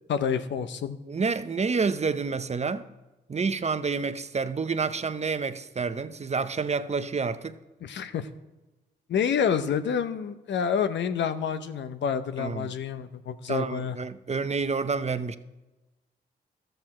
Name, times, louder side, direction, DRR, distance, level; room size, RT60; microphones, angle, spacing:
voice 1, 0.1-1.0 7.8-8.3 9.1-14.0, left 7 dB, 65° left, 0.8 m, -28 dB
voice 2, 1.1-2.9 3.3-7.6 12.4-12.7 13.5-15.4, right 4 dB, 35° right, 0.7 m, -29 dB
13.5 x 7.9 x 4.3 m
supercardioid pair, 45°, 20 cm